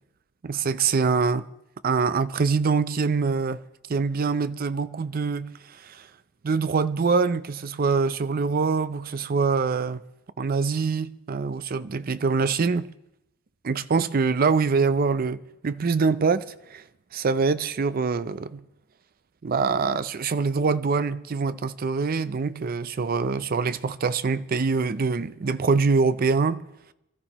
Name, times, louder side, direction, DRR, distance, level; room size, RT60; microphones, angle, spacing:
voice 1, 0.4-1.5 1.8-3.6 3.9-6.1 6.4-10.0 10.4-12.9 13.6-16.8 17.1-18.6 19.4-26.6, right 4 dB, 45° right, 0.5 m, -24 dB
23.0 x 13.0 x 3.0 m
head